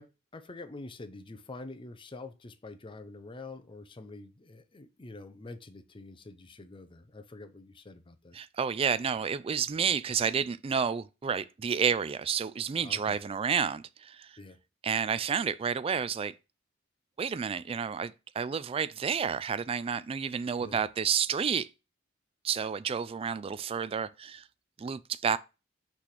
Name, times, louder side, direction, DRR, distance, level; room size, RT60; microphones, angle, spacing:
voice 1, 0.0-8.4 12.8-13.2 14.4-14.6 20.6-20.8, left 2 dB, 25° left, 0.6 m, -46 dB
voice 2, 8.3-14.4 14.8-16.3 17.2-21.7 22.4-24.4 24.8-25.4, right 7 dB, 30° right, 0.3 m, -30 dB
6.0 x 3.3 x 5.8 m
head